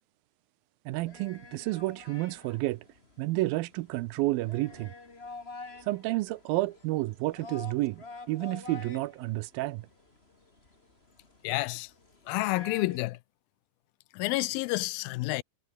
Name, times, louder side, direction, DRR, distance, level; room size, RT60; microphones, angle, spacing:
sound 1, 0.9-13.0, left 3 dB, 20° left, 2.0 m, -48 dB
voice 1, 0.9-2.8 3.2-4.9 5.9-9.8, right 19 dB, 85° right, 2.4 m, -30 dB
voice 2, 11.4-11.9 12.3-13.2 14.1-15.4, left 20 dB, 85° left, 2.4 m, -29 dB
omnidirectional pair, 4.2 m